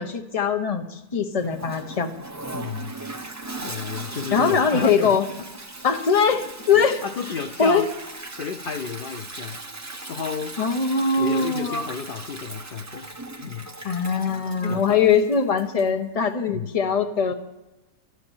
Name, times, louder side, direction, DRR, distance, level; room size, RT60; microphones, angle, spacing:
voice 1, 0.0-2.1 4.3-5.2 5.8-7.0 7.6-7.8 10.6-11.9 13.8-17.3, left 5 dB, 25° left, 6 dB, 1.0 m, -21 dB
Toilet flush, 1.4-16.0, right 2 dB, 15° right, 0.6 m, -38 dB
voice 2, 2.5-3.0 3.6-5.5 6.7-7.9 8.3-9.6 10.1-10.6 11.2-13.7 14.3-14.4 14.6-15.1 16.5-16.7, left 6 dB, 75° left, 8 dB, 0.5 m, -32 dB
13.0 x 11.5 x 7.2 m, 1.0 s
omnidirectional pair, 1.6 m